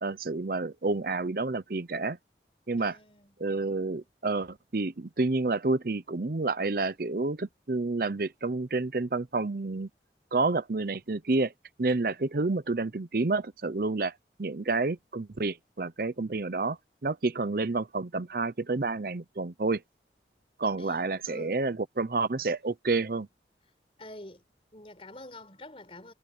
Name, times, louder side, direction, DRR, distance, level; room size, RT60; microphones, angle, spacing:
voice 1, 0.0-2.2 2.7-3.0 3.4-9.9 10.3-11.5 11.8-14.1 14.4-19.8 20.6-23.3, right 3 dB, 55° right, 0.7 m, -29 dB
voice 2, 2.8-3.3 20.8-21.6 24.0-24.4 24.7-26.1, left 1 dB, 30° left, 4.4 m, -47 dB
head